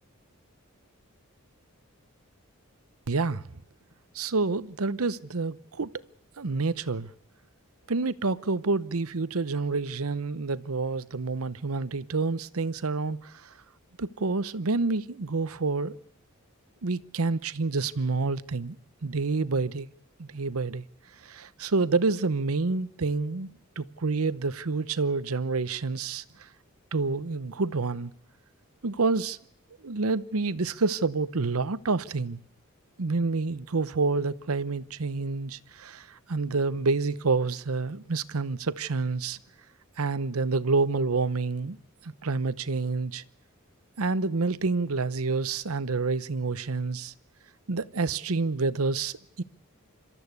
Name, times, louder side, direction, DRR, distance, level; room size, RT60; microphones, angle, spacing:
voice 1, 3.1-3.4 4.1-5.9 6.4-7.1 7.9-13.5 14.0-16.0 16.8-18.8 19.0-19.9 20.2-20.8 21.2-23.5 23.8-26.2 26.9-28.1 28.8-29.4 29.8-32.4 33.0-39.4 40.0-41.8 42.0-43.2 44.0-47.1 47.7-49.4, right 3 dB, 85° right, 0.9 m, -28 dB
26.0 x 13.5 x 8.3 m
head